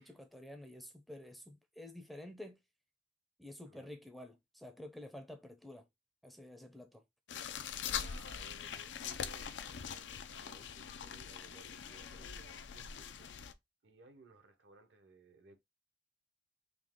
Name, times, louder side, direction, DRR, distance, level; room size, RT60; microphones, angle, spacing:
voice 1, 0.0-2.6 3.4-5.9 6.2-7.0, left 1 dB, ahead, 0.5 m, -50 dB
sound 1, 7.3-13.5, left 8 dB, 80° left, 0.5 m, -43 dB
voice 2, 7.9-13.3 13.8-15.6, right 3 dB, 75° right, 0.8 m, -61 dB
3.8 x 2.8 x 3.5 m
head